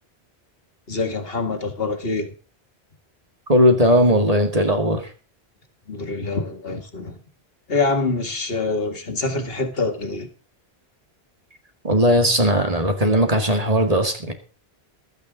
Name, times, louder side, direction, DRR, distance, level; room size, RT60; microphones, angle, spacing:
voice 1, 0.9-2.3 5.9-7.2 7.7-10.3, left 3 dB, 65° left, 8 dB, 2.1 m, -25 dB
voice 2, 3.5-5.1 11.8-14.3, equal, 35° right, 5 dB, 2.3 m, -18 dB
15.5 x 12.0 x 4.0 m, 0.35 s
omnidirectional pair, 1.1 m